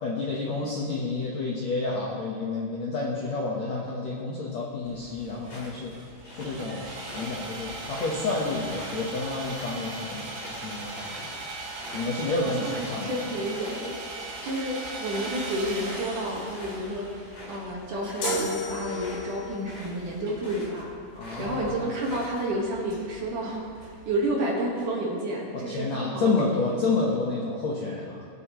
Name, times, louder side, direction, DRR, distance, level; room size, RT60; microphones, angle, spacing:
voice 1, 0.0-5.9 6.4-11.3 11.9-13.1 21.1-21.8 25.5-28.3, left 3 dB, 80° left, -3 dB, 1.5 m, -29 dB
Sawing, 4.9-24.2, right 2 dB, 90° right, 5.1 m, -40 dB
sound 1, 5.4-7.3 7.7-13.1 13.4-13.9 14.2-20.8 21.2-22.6, left 1 dB, 40° left, 2.2 m, -45 dB
voice 2, 12.4-13.9 14.4-17.1 17.5-20.9 21.4-26.9, right 1 dB, 60° right, -3 dB, 2.6 m, -30 dB
sound 2, 18.2-19.6, left 1 dB, 60° left, 2.9 m, -31 dB
21.0 x 8.3 x 3.1 m, 2.6 s
omnidirectional pair, 5.0 m